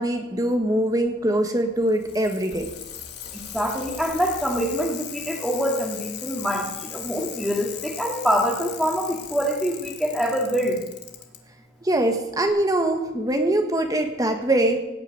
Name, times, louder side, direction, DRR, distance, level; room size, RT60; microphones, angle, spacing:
voice 1, 0.0-2.7 11.8-14.8, right 1 dB, 20° right, 5 dB, 1.3 m, -23 dB
Bicycle, 1.8-11.4 12.5-12.6, left 9 dB, 60° left, 1.7 m, -38 dB
voice 2, 3.5-10.8, equal, ahead, 0 dB, 2.3 m, -25 dB
17.5 x 6.5 x 8.8 m, 0.98 s
head